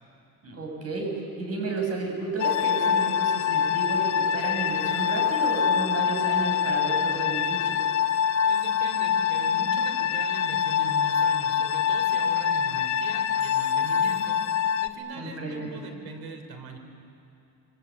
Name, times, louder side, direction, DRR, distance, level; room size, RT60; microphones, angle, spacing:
voice 1, 0.4-7.9 15.1-15.7, right 3 dB, 40° right, 1 dB, 6.4 m, -32 dB
sound 1, 2.4-14.9, left 8 dB, 50° left, 1.0 m, -25 dB
voice 2, 8.4-14.4 14.8-16.8, right 3 dB, 80° right, 5 dB, 3.5 m, -40 dB
26.5 x 23.5 x 8.4 m, 2.7 s
cardioid pair, 145°, 37 cm